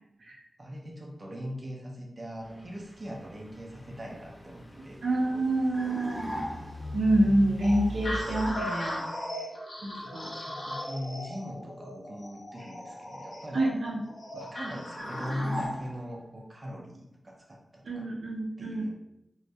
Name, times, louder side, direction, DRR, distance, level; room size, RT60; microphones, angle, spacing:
voice 1, 0.6-5.0 9.9-13.7 14.3-18.0 18.6-18.9, equal, 40° right, -1 dB, 0.5 m, -40 dB
Truck / Idling, 2.4-8.5, right 1 dB, 30° left, 0.8 m, -41 dB
voice 2, 5.0-6.3 6.9-9.0 9.8-10.3 13.5-14.0 17.8-18.9, right 1 dB, 85° right, -3 dB, 0.5 m, -27 dB
sound 1, 5.7-6.9 15.0-16.3, equal, 20° right, 0.9 m, -37 dB
sound 2, 7.6-15.8, equal, 75° left, 0.7 m, -38 dB
2.2 x 2.1 x 2.7 m, 0.86 s
wide cardioid pair, 70°, 0 cm